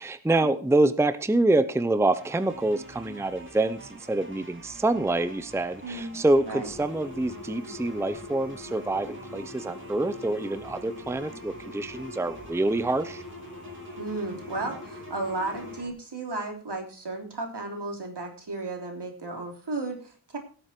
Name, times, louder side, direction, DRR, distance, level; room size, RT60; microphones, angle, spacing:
voice 1, 0.0-13.2, right 2 dB, 5° right, 12 dB, 0.7 m, -26 dB
sound 1, 2.2-15.9, right 1 dB, 25° right, 3.5 m, -47 dB
voice 2, 5.8-6.2 6.4-6.7 14.0-20.4, right 2 dB, 55° right, 3 dB, 3.4 m, -34 dB
sound 2, 6.6-15.8, left 2 dB, 35° left, 2.0 m, -43 dB
17.0 x 7.9 x 4.5 m, 0.39 s
wide cardioid pair, 85°, 47 cm